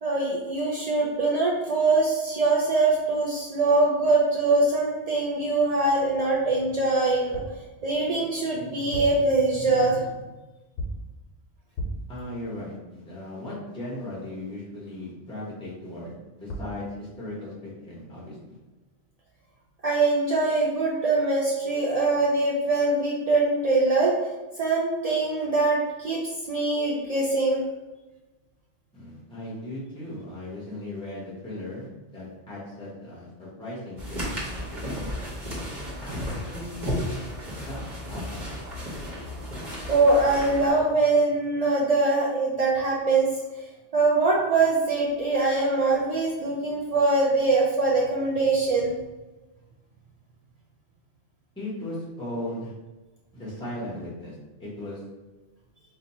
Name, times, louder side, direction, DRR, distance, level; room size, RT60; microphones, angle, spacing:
voice 1, 0.0-7.4 7.8-10.1 19.8-24.1 24.6-27.6 39.9-43.3 43.9-48.9, right 3 dB, 70° right, -4 dB, 0.3 m, -23 dB
sound 1, 7.3-7.7 8.8-9.3 10.8-11.1 11.8-12.2 16.2-16.3 16.5-16.8, equal, 80° left, 0.9 m, -34 dB
voice 2, 12.1-18.6 28.9-34.2 34.6-35.1 36.0-36.9 37.6-38.6 51.6-52.7 53.3-55.0, left 1 dB, 5° left, -6 dB, 0.7 m, -37 dB
sound 2, 34.0-40.7, equal, 45° right, 1.0 m, -33 dB
2.7 x 2.2 x 4.1 m, 1.1 s
omnidirectional pair, 1.2 m